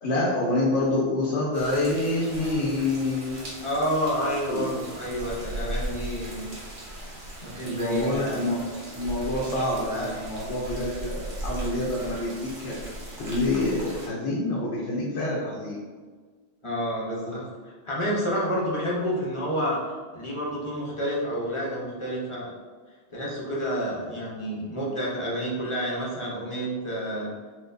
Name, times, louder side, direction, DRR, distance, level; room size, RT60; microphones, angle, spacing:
voice 1, 0.0-3.7 4.5-4.7 7.6-8.6 8.9-12.8 13.2-15.8, left 2 dB, 80° left, -4 dB, 0.9 m, -27 dB
sound 1, 1.5-14.1, right 1 dB, 50° right, 0.9 m, -38 dB
voice 2, 3.6-6.4 7.4-8.5 16.6-19.8 20.1-22.5 23.1-27.3, equal, 35° left, -5 dB, 0.6 m, -29 dB
4.2 x 2.2 x 2.5 m, 1.5 s
omnidirectional pair, 1.2 m